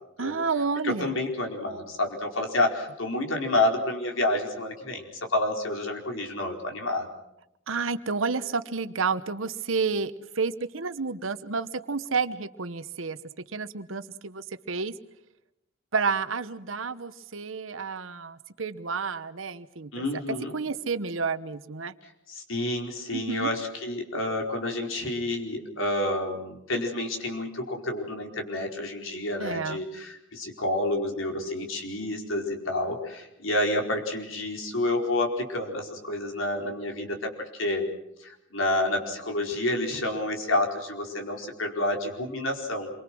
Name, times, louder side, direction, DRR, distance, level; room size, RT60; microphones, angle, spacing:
voice 1, 0.2-1.1 7.7-13.2 13.5-14.9 15.9-20.0 20.5-21.9 23.1-23.5 29.4-29.8, right 4 dB, 75° right, 13 dB, 1.1 m, -30 dB
voice 2, 0.8-7.1 19.9-20.5 22.0-37.9 38.2-42.9, left 1 dB, 75° left, 2 dB, 4.7 m, -29 dB
28.0 x 23.5 x 6.2 m, 0.84 s
head